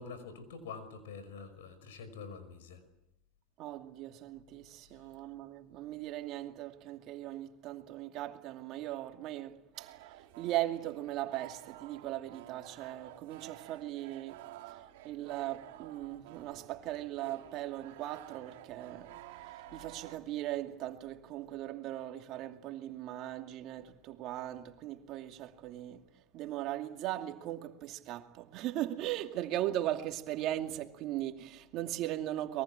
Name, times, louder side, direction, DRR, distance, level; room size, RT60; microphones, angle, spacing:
voice 1, 0.0-2.8, left 5 dB, 85° left, 5.4 m, -46 dB
voice 2, 3.6-9.9 10.4-14.8 15.0-19.1 19.7-26.1 26.3-32.6, right 14 dB, 55° right, 2.4 m, -38 dB
sound 1, 9.7-20.2, right 14 dB, 75° right, 2.1 m, -52 dB
23.0 x 23.0 x 8.8 m
supercardioid pair, 105°, 0 cm